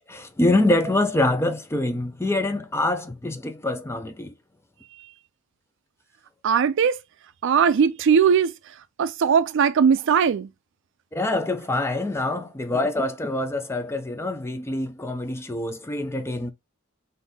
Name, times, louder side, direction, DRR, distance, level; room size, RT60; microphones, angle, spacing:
voice 1, 0.1-4.3 11.1-16.5, left 2 dB, 10° left, 0.4 m, -25 dB
voice 2, 6.4-7.0 7.4-8.5 9.0-10.5, right 7 dB, 60° right, 0.4 m, -19 dB
3.5 x 2.7 x 4.0 m
head